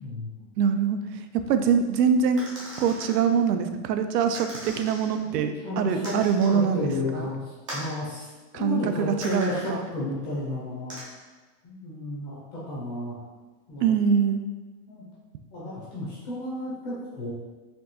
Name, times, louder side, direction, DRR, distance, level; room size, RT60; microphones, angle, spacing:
voice 1, 0.0-0.5 5.3-6.2 6.4-8.3 8.5-11.0 11.6-13.2 13.7-13.9 14.9-15.1 15.5-17.3, left 2 dB, 25° left, -8 dB, 0.6 m, -33 dB
voice 2, 0.6-1.0 1.5-2.5 2.8-6.9 7.1-7.2 8.6-9.8 13.8-14.4, right 6 dB, 85° right, 8 dB, 0.5 m, -23 dB
sound 1, 2.4-3.2 4.3-5.2 6.0-6.6 7.7-7.9 9.2-9.7 10.9-11.0, right 1 dB, 25° right, 0.3 m, -38 dB
4.4 x 2.7 x 2.7 m, 1.3 s
supercardioid pair, 170°, 47 cm